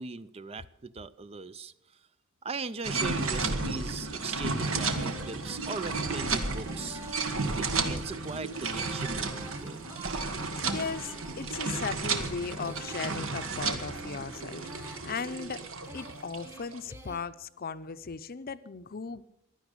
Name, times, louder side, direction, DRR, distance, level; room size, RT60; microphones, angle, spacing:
voice 1, 0.0-1.7 2.4-7.0 7.6-9.9, right 4 dB, 30° right, 0.4 m, -39 dB
sound 1, 2.8-16.8, right 3 dB, 70° right, 1.6 m, -33 dB
Female singing, 3.6-17.2, right 2 dB, 10° right, 1.1 m, -49 dB
voice 2, 10.6-15.6 15.9-19.2, left 5 dB, 45° left, 0.6 m, -37 dB
16.0 x 11.5 x 6.7 m
head